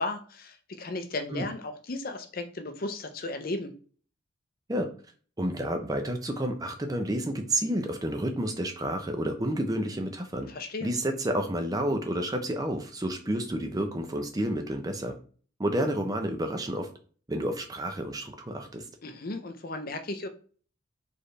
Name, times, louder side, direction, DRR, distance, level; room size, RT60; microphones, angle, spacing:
voice 1, 0.0-3.7 10.5-10.9 19.0-20.3, left 2 dB, 50° left, 7 dB, 0.6 m, -35 dB
voice 2, 5.4-10.5 10.8-15.2 15.6-16.9 17.3-18.8, right 1 dB, 20° right, 5 dB, 0.6 m, -30 dB
4.4 x 3.4 x 3.2 m, 0.42 s
head